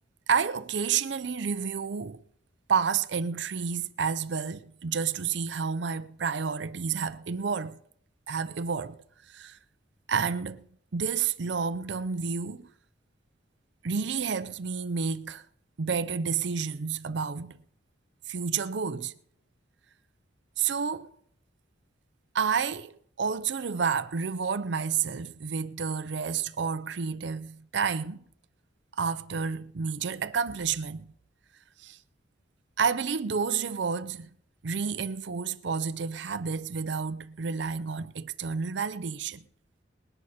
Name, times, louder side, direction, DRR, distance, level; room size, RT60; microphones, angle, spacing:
voice 1, 0.3-2.2 2.7-7.8 8.3-9.0 9.3-9.6 10.1-10.7 10.9-12.7 13.8-15.5 15.8-17.6 18.3-19.1 20.6-21.1 22.3-28.2 28.9-31.1 31.8-32.0 32.8-34.3 34.6-39.4, right 6 dB, 70° right, 0.6 m, -30 dB
20.5 x 11.0 x 4.2 m
head